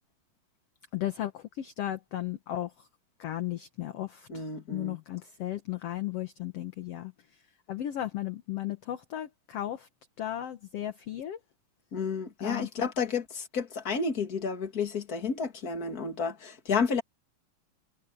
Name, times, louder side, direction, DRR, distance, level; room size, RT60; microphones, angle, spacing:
voice 1, 0.9-2.7 3.2-4.4 4.7-7.1 7.7-9.9 10.2-11.4 12.4-12.9, left 13 dB, 60° left, 1.9 m, -35 dB
voice 2, 4.3-5.0 11.9-17.0, left 5 dB, 30° left, 2.5 m, -31 dB
omnidirectional pair, 3.6 m